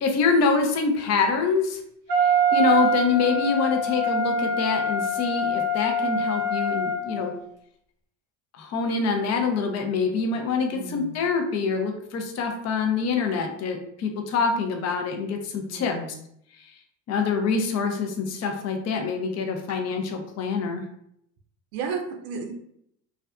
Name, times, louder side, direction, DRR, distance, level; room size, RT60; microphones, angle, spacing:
voice 1, 0.0-1.8 2.2-7.3 8.5-16.0 17.1-20.8, left 5 dB, 35° left, 4 dB, 0.5 m, -25 dB
Wind instrument woodwind instrument, 2.1-7.4, right 1 dB, 45° right, 0.6 m, -24 dB
voice 2, 10.7-11.1 15.7-16.2 21.7-22.5, right 5 dB, 90° right, 3 dB, 0.6 m, -33 dB
2.5 x 2.3 x 2.2 m, 0.71 s
supercardioid pair, 100°, 47 cm